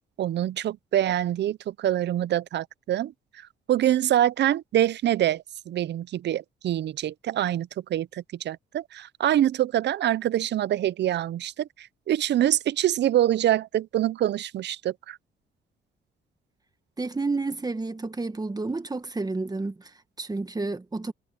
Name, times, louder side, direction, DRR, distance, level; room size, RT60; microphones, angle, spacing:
voice 1, 0.2-15.2, right 12 dB, 60° right, 0.6 m, -25 dB
voice 2, 17.0-21.1, right 3 dB, 20° right, 1.6 m, -30 dB
cardioid pair, 90°, 20 cm